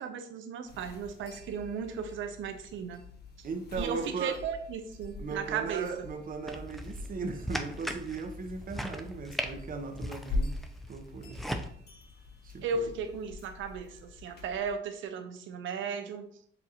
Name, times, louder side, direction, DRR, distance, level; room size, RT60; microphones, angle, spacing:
voice 1, 0.0-3.0 3.8-5.9 12.6-16.3, right 6 dB, 75° right, 0.7 m, -35 dB
sound 1, 0.6-14.7, left 2 dB, 55° left, 1.0 m, -43 dB
voice 2, 3.4-4.5 5.2-10.6 10.9-11.4 12.4-12.9, right 4 dB, 45° right, 0.8 m, -38 dB
sound 2, 6.5-11.7, equal, ahead, 0.5 m, -39 dB
6.9 x 2.5 x 2.9 m
cardioid pair, 90°, 20 cm